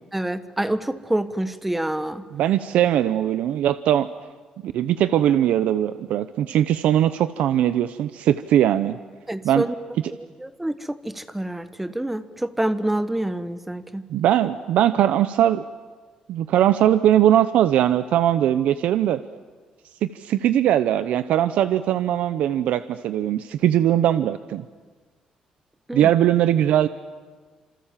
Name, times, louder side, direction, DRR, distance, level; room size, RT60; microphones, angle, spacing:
voice 1, 0.1-2.2 9.3-9.7 10.4-14.1 25.9-26.1, right 1 dB, 5° right, 12 dB, 1.2 m, -27 dB
voice 2, 2.3-4.1 4.6-9.0 9.4-9.7 14.1-15.7 16.3-19.2 20.0-24.6 25.9-26.9, right 11 dB, 90° right, 12 dB, 0.8 m, -20 dB
29.5 x 26.5 x 7.5 m, 1.4 s
cardioid pair, 150°, 2 cm